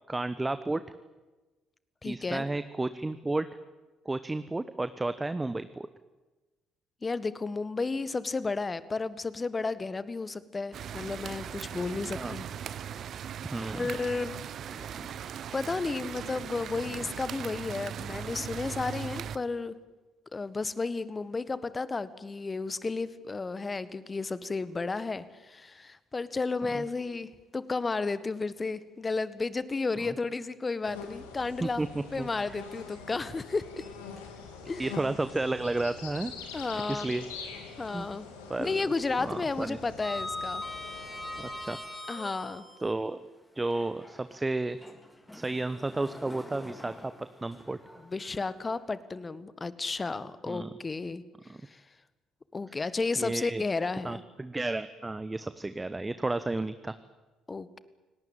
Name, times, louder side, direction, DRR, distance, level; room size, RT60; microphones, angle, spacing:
voice 1, 0.1-0.8 2.0-3.5 4.0-5.9 12.1-12.3 13.5-13.8 26.7-26.8 30.0-30.1 31.6-32.5 34.8-36.3 36.7-37.2 37.9-38.1 38.5-38.8 39.2-39.8 41.4-41.8 42.8-43.2 43.5-44.8 45.3-47.1 47.4-47.8 50.5-50.7 51.5-51.6 53.2-53.6 54.0-56.9, right 2 dB, 15° right, 12 dB, 1.1 m, -32 dB
voice 2, 2.0-2.4 7.0-12.5 13.7-14.3 14.8-15.1 15.5-19.7 20.3-31.9 32.1-33.8 34.6-34.9 36.5-37.1 37.8-38.2 38.6-40.6 42.1-42.6 48.1-51.2 51.7-51.8 52.5-54.2 57.5-57.8, left 3 dB, 25° left, 15 dB, 1.6 m, -33 dB
sound 1, 10.7-19.4, right 8 dB, 55° right, 1.0 m, -39 dB
sound 2, 30.8-41.6, left 5 dB, 80° left, 3.3 m, -45 dB
Sliding door, 33.7-34.7 35.0-35.2 36.9-37.9 38.2-38.6 38.8-42.9 43.6-48.8, left 2 dB, 10° left, 4.5 m, -43 dB
29.5 x 18.5 x 9.1 m, 1.2 s
figure-of-eight pair, 50°, 0 cm